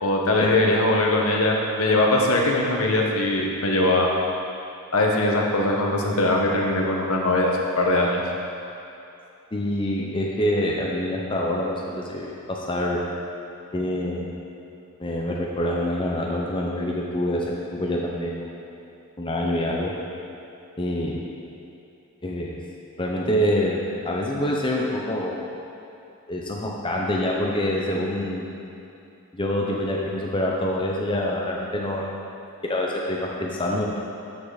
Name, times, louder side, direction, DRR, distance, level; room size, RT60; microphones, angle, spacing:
voice 1, 0.0-4.1 4.9-8.2, left 2 dB, 70° left, -1 dB, 1.2 m, -21 dB
voice 2, 9.5-13.0 13.7-14.3 15.0-18.6 19.2-19.9 20.8-21.2 22.2-22.6 23.0-25.4 26.3-28.5 29.3-32.0 32.6-33.9, left 1 dB, 20° left, -2 dB, 0.7 m, -26 dB
12.5 x 6.0 x 4.0 m, 2.8 s
head